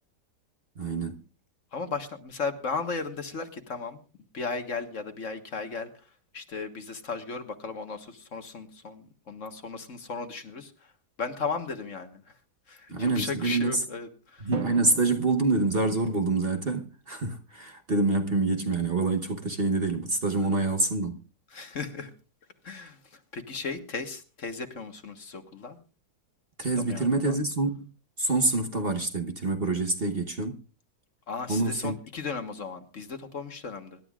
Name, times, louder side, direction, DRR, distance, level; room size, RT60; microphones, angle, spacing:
voice 1, 0.8-1.2 12.9-13.8 14.5-21.2 26.6-27.9 28.2-30.6 31.5-31.9, right 3 dB, 40° right, 1.2 m, -26 dB
voice 2, 1.7-4.0 4.3-6.1 6.3-10.9 11.2-12.2 12.7-14.5 21.5-22.1 22.6-25.8 26.8-27.4 31.3-34.0, left 4 dB, 50° left, 1.6 m, -36 dB
Drum, 14.5-16.6, right 4 dB, 55° right, 2.0 m, -40 dB
25.5 x 12.0 x 2.4 m
omnidirectional pair, 1.7 m